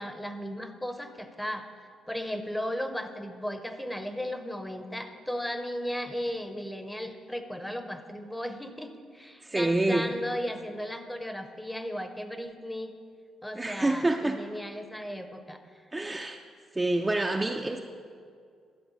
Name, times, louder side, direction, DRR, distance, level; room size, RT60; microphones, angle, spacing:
voice 1, 0.0-1.7 2.1-12.9 13.4-15.6, equal, 5° left, 8 dB, 0.7 m, -35 dB
voice 2, 9.4-10.1 13.6-14.4 15.9-16.4 16.7-17.8, right 2 dB, 15° right, 3 dB, 0.4 m, -27 dB
12.0 x 4.4 x 6.8 m, 2.1 s
cardioid pair, 90°, 0 cm